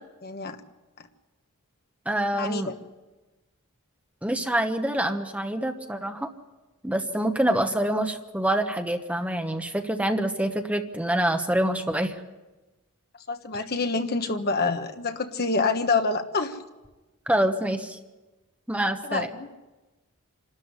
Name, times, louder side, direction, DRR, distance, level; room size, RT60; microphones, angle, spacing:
voice 1, 0.2-0.6 2.3-2.7 13.3-16.6 19.1-19.5, left 3 dB, 45° left, 7 dB, 1.3 m, -27 dB
voice 2, 2.0-2.7 4.2-6.3 6.8-12.1 17.3-18.0 18.7-19.3, right 1 dB, 5° right, 6 dB, 1.1 m, -26 dB
27.5 x 13.0 x 9.7 m, 1.1 s
head